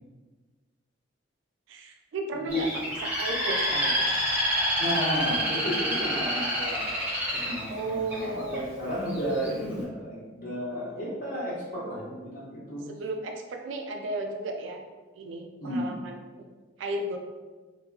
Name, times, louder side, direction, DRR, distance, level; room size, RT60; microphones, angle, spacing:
voice 1, 1.7-2.7 3.0-3.8 7.7-8.8 12.9-14.8 15.2-16.5 16.8-17.2, right 2 dB, 70° right, 4 dB, 0.3 m, -34 dB
voice 2, 2.3-2.7 3.7-3.9 4.8-12.8 15.6-16.0, equal, 45° left, -9 dB, 1.2 m, -33 dB
Bird, 2.5-8.6 9.1-9.5, equal, 10° right, 0.6 m, -28 dB
3.0 x 2.3 x 2.3 m, 1.3 s
head